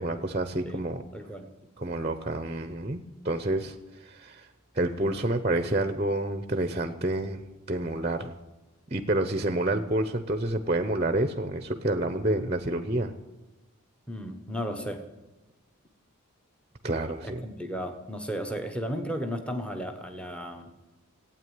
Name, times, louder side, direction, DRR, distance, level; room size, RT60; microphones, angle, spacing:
voice 1, 0.0-1.0 1.8-4.5 4.7-8.3 8.9-13.1 16.8-17.4, right 1 dB, 30° right, 9 dB, 0.8 m, -29 dB
voice 2, 1.1-1.5 14.1-15.0 17.2-20.7, equal, 5° left, 6 dB, 1.2 m, -34 dB
16.0 x 9.0 x 9.4 m, 1.0 s
head